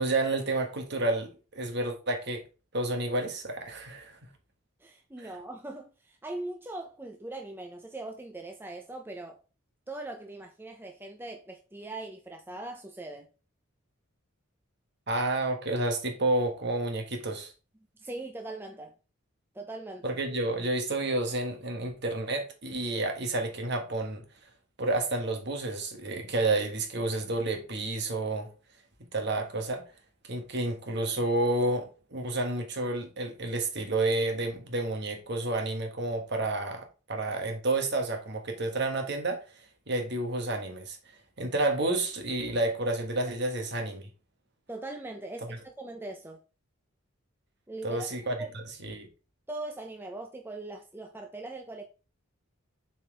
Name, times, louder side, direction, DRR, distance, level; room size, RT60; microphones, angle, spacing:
voice 1, 0.0-2.4 2.7-4.2 5.2-5.3 15.1-17.5 20.0-24.2 24.8-28.5 29.1-29.8 30.2-41.0 41.4-44.0 47.8-48.3 48.8-49.1, right 2 dB, 55° right, 1.5 m, -30 dB
voice 2, 4.8-9.4 9.9-13.3 18.0-18.9 19.5-20.2 44.7-46.4 47.7-48.1 48.4-48.5 49.5-51.9, right 2 dB, 10° right, 0.5 m, -40 dB
7.4 x 4.4 x 3.4 m
head